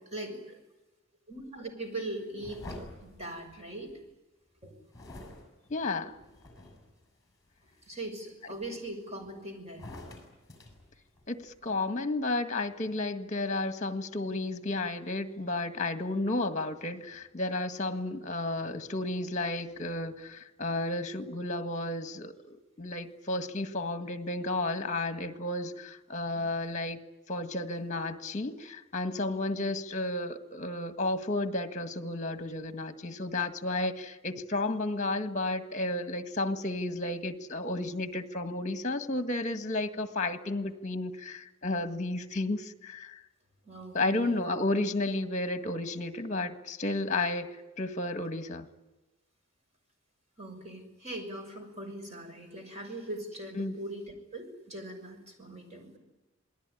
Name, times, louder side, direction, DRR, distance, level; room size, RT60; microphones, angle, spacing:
voice 1, 0.1-0.6 1.3-2.6 3.0-4.0 4.6-4.9 7.9-9.9 43.6-44.4 50.4-55.9, right 1 dB, 30° right, 4 dB, 6.1 m, -41 dB
sound 1, 2.4-4.0 4.9-7.0 7.5-7.9 8.5-9.3 9.7-11.6, left 1 dB, 15° left, 6.7 m, -48 dB
voice 2, 5.7-6.1 11.3-27.0 27.3-43.2 43.9-48.7 53.5-53.7, left 2 dB, 35° left, 9 dB, 1.7 m, -32 dB
27.5 x 19.5 x 10.0 m, 1.1 s
head